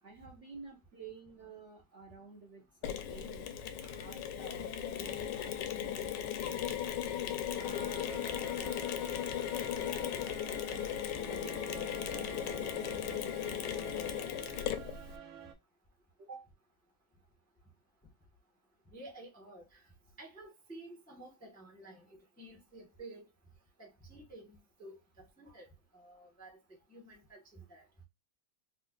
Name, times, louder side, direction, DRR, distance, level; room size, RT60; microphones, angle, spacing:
voice 1, 0.0-3.5 3.9-6.9 7.6-10.1 10.6-10.9 11.3-14.2 16.2-16.5, right 4 dB, 50° right, 0.9 m, -52 dB
Mechanisms, 2.8-15.2, left 10 dB, 75° left, 1.2 m, -37 dB
sound 1, 7.6-15.5, right 7 dB, 90° right, 1.6 m, -50 dB
voice 2, 18.9-19.7 20.2-23.3 23.8-25.7 25.9-26.6 26.9-27.8, right 2 dB, 5° left, 0.7 m, -52 dB
4.4 x 2.5 x 2.3 m
omnidirectional pair, 2.1 m